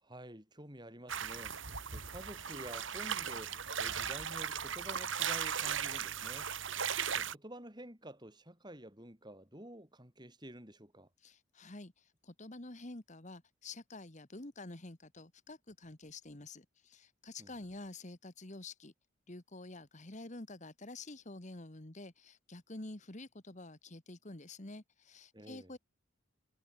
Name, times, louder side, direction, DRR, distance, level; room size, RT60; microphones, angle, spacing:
voice 1, 0.0-1.6 1.9-6.5 7.1-11.1 17.4-17.5 25.3-25.7, right 1 dB, 20° right, 5.1 m, -50 dB
sound 1, 1.1-7.4, right 7 dB, 65° right, 3.5 m, -37 dB
voice 2, 11.2-18.9 19.3-25.8, left 2 dB, 35° left, 1.6 m, -49 dB
head